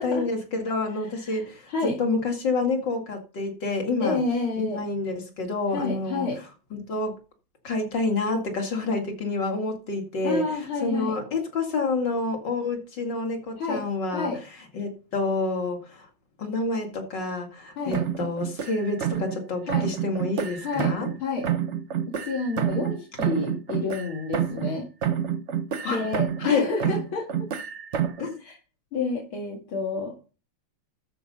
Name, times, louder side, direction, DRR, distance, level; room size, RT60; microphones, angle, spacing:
voice 1, 0.0-4.2 4.6-6.3 6.7-7.2 7.6-14.3 14.7-16.1 16.4-21.1 25.8-26.0 26.4-26.7 28.2-28.4, left 3 dB, 55° left, 2.9 m, -28 dB
voice 2, 4.0-4.8 5.7-6.4 10.2-11.1 13.6-13.8 14.1-14.4 17.8-18.0 19.6-19.9 20.6-20.9 21.2-21.5 22.2-24.9 25.8-27.3 28.4-28.5 28.9-30.1, left 3 dB, 75° left, 3.1 m, -29 dB
sound 1, 17.9-19.4 19.7-21.2 21.4-24.8 25.0-26.5 26.8-28.3, right 9 dB, 50° right, 0.8 m, -28 dB
13.0 x 5.3 x 5.5 m
omnidirectional pair, 2.3 m